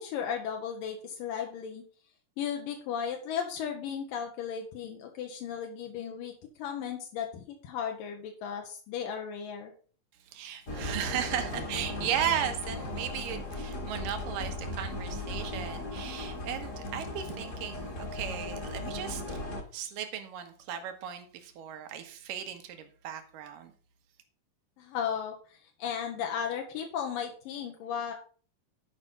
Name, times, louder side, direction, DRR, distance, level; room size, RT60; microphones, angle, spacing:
voice 1, 0.0-1.8 2.4-9.7 24.8-28.1, left 8 dB, 80° left, 2.8 m, -35 dB
voice 2, 10.3-19.4 19.7-23.7, right 9 dB, 85° right, 2.8 m, -36 dB
sound 1, 10.7-19.6, left 1 dB, 35° left, 1.2 m, -37 dB
10.5 x 5.5 x 5.4 m
omnidirectional pair, 3.8 m